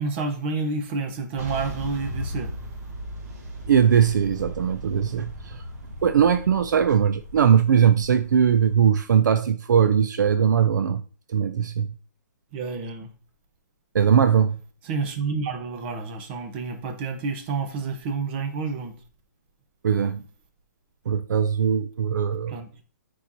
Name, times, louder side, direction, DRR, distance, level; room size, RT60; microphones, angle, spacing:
voice 1, 0.0-2.5 12.5-13.1 14.8-18.9 22.5-22.8, right 4 dB, 35° right, 1.0 m, -29 dB
sound 1, 1.4-8.8, right 1 dB, 50° right, 1.5 m, -37 dB
voice 2, 3.7-5.6 6.0-11.0 11.3-11.9 13.9-14.6 19.8-20.2 21.1-22.6, right 8 dB, 70° right, 0.4 m, -20 dB
8.1 x 4.7 x 2.8 m
hypercardioid pair, 145°, 10 cm